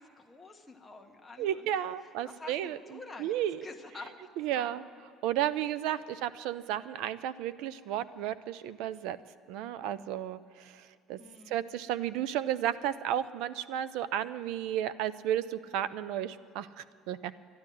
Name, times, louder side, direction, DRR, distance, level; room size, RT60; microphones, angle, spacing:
voice 1, 0.0-4.1 4.5-4.9 11.2-11.6, left 3 dB, 10° left, 1 dB, 1.0 m, -49 dB
voice 2, 1.4-3.6 4.4-4.8 5.2-9.2 9.5-11.2 11.5-17.3, right 11 dB, 70° right, 16 dB, 0.5 m, -33 dB
12.0 x 11.5 x 9.9 m, 2.5 s
cardioid pair, 170°, 0 cm